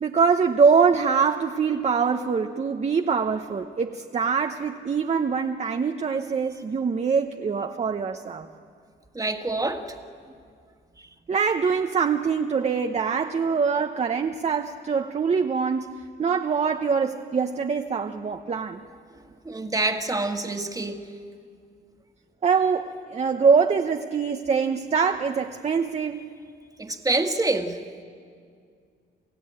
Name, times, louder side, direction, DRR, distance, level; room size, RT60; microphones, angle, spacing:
voice 1, 0.0-8.5 11.3-18.8 22.4-26.2, right 5 dB, 35° right, 5 dB, 0.9 m, -24 dB
voice 2, 9.2-9.9 19.5-21.0 26.8-27.8, right 2 dB, 20° right, 5 dB, 1.8 m, -26 dB
28.5 x 16.0 x 8.8 m, 2.2 s
cardioid pair, 90°, 20 cm